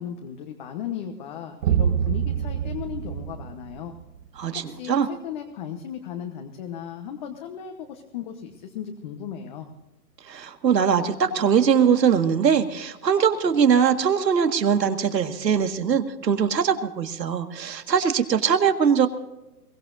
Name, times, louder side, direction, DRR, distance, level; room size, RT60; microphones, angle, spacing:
voice 1, 0.0-3.9 4.6-9.7, left 9 dB, 30° left, 4 dB, 1.1 m, -36 dB
sound 1, 1.6-4.2, right 9 dB, 50° right, 0.7 m, -25 dB
voice 2, 4.4-5.1 10.3-19.1, right 7 dB, 80° right, 7 dB, 1.9 m, -21 dB
22.5 x 17.5 x 2.6 m, 0.99 s
hypercardioid pair, 150°, 50 cm